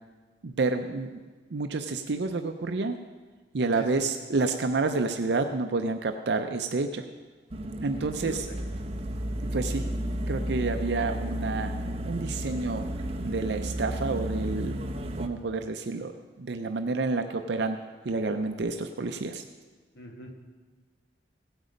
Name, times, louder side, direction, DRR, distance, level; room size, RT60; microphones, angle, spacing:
voice 1, 0.4-1.1 1.5-3.0 3.5-7.1 7.8-8.5 9.5-9.9 10.3-11.8 12.1-12.9 13.2-14.8 15.2-17.8 18.1-19.4, right 3 dB, 65° right, 7 dB, 0.5 m, -29 dB
voice 2, 3.8-4.2 8.2-8.7 19.9-20.3, equal, 70° left, 3 dB, 1.6 m, -42 dB
sound 1, 7.5-15.3, equal, 35° right, 0.7 m, -33 dB
16.5 x 8.0 x 5.1 m, 1.4 s
head